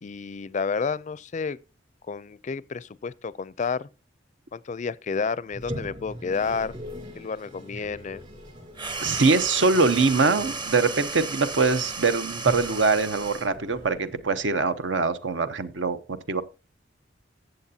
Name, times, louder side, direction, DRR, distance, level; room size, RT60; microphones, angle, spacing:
voice 1, 0.0-1.6 2.1-3.9 4.5-6.8 7.2-8.2, left 5 dB, 40° left, 0.4 m, -30 dB
Toilet flush, 5.5-14.6, equal, 40° right, 3.1 m, -41 dB
sound 1, 8.7-13.6, right 4 dB, 25° right, 0.8 m, -34 dB
voice 2, 9.0-16.4, right 4 dB, 75° right, 0.8 m, -23 dB
14.5 x 7.8 x 2.8 m
head